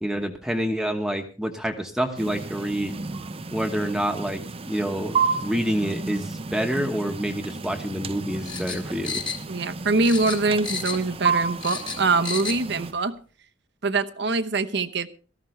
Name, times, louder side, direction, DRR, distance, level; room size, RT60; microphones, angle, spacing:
voice 1, 0.0-3.0 3.5-9.2, equal, 5° right, 3 dB, 1.2 m, -27 dB
sound 1, 2.2-12.9, right 5 dB, 30° right, 0.6 m, -31 dB
sound 2, 8.4-9.7 10.0-11.1 11.4-12.6 12.9-13.0, left 5 dB, 25° left, 1.9 m, -32 dB
voice 2, 9.5-13.2 13.8-15.1, right 3 dB, 65° right, 10 dB, 1.0 m, -24 dB
17.5 x 14.0 x 3.2 m, 0.37 s
head